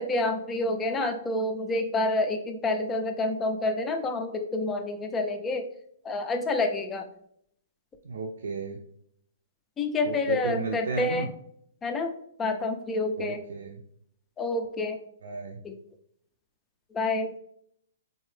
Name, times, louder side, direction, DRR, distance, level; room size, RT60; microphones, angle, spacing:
voice 1, 0.0-5.7 6.0-7.1 9.8-11.3 11.8-13.4 14.4-15.0 15.6-15.7 16.9-17.3, left 2 dB, 15° left, 6 dB, 0.4 m, -28 dB
voice 2, 8.0-8.8 10.0-11.3 13.2-13.8 15.2-15.6, right 4 dB, 90° right, 1 dB, 0.6 m, -33 dB
4.1 x 2.7 x 3.3 m, 0.67 s
hypercardioid pair, 160°, 0 cm